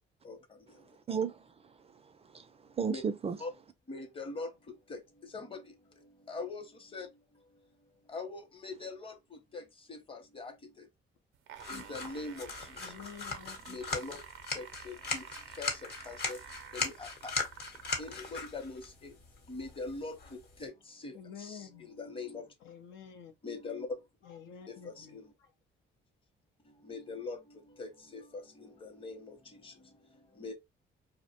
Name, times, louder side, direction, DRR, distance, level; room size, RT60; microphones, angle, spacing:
voice 1, 0.2-0.9 2.9-3.0 3.4-3.5 3.9-7.7 8.1-10.9 11.7-12.9 13.7-14.2 14.5-19.2 19.5-22.5 23.4-24.0 24.7-25.3 26.6-30.5, left 3 dB, 25° left, 0.7 m, -43 dB
voice 2, 1.1-3.4, right 6 dB, 30° right, 0.4 m, -35 dB
sound 1, 11.3-18.3 19.1-19.2, right 9 dB, 85° right, 0.5 m, -50 dB
sound 2, 11.6-20.7, left 4 dB, 55° left, 0.9 m, -39 dB
voice 3, 12.8-13.8 21.1-22.0 22.6-23.3 24.2-25.5, left 7 dB, 85° left, 0.6 m, -50 dB
2.5 x 2.1 x 2.8 m
cardioid pair, 90°, 20 cm